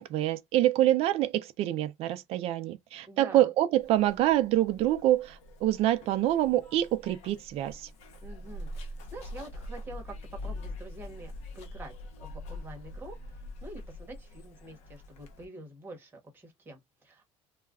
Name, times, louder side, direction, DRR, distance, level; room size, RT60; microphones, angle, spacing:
voice 1, 0.0-7.9, right 13 dB, 50° right, 0.4 m, -26 dB
voice 2, 3.1-3.5 8.2-11.9 12.2-17.2, right 2 dB, 15° right, 0.9 m, -46 dB
Zipper (clothing), 3.7-15.5, left 1 dB, 60° left, 0.7 m, -44 dB
2.3 x 2.1 x 3.5 m
cardioid pair, 175°, 13 cm